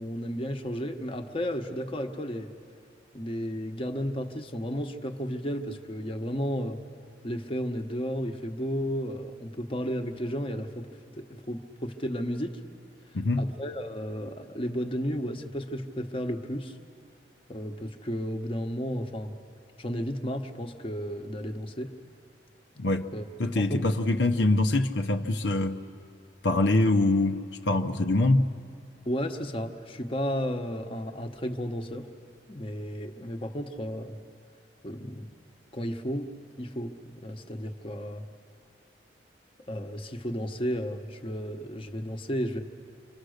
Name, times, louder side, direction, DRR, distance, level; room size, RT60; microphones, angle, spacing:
voice 1, 0.0-2.5 3.1-6.8 7.2-10.9 11.2-12.6 13.4-16.8 17.5-19.3 19.8-21.9 23.1-23.2 23.5-23.8 29.0-32.1 32.5-34.2 34.8-35.3 35.7-36.3 36.6-38.2 39.7-42.6, equal, 30° left, 4 dB, 1.2 m, -33 dB
voice 2, 13.1-13.5 22.8-23.1 23.4-25.9 26.4-28.5, left 2 dB, 75° left, 5 dB, 0.8 m, -24 dB
27.5 x 24.5 x 6.6 m, 2.3 s
head